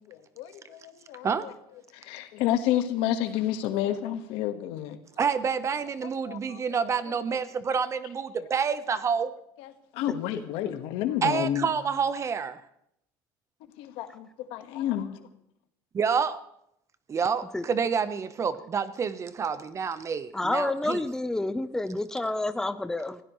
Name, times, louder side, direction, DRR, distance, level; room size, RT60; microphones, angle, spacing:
voice 1, 0.1-1.5 1.9-5.0 6.0-6.6 7.1-7.4 8.4-8.5 9.6-11.7 13.8-15.3, left 11 dB, 80° left, 1.5 m, -30 dB
voice 2, 5.2-9.3 11.2-12.6 15.9-16.4 17.1-21.0, right 6 dB, 30° right, 0.9 m, -28 dB
voice 3, 20.3-23.2, left 2 dB, 5° left, 0.7 m, -29 dB
25.5 x 16.5 x 3.2 m
cardioid pair, 115°, 9 cm